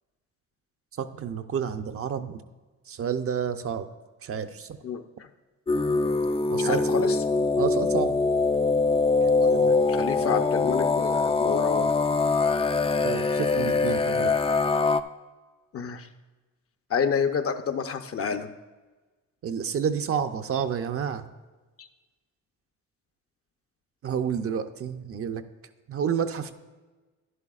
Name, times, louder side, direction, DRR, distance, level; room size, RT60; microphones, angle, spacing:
voice 1, 1.0-2.4 2.9-3.9 4.2-4.8 6.5-7.0 7.6-8.2 13.0-14.3 19.4-21.2 24.0-25.4 25.9-26.5, right 7 dB, 50° right, 8 dB, 0.6 m, -29 dB
voice 2, 4.8-5.3 6.6-7.2 9.2-11.9 15.7-16.1 16.9-18.5 21.8-21.9, left 6 dB, 50° left, 8 dB, 0.7 m, -29 dB
sound 1, 5.7-15.0, left 3 dB, 20° left, 0.4 m, -23 dB
11.0 x 10.5 x 2.4 m, 1.2 s
cardioid pair, 90°, 30 cm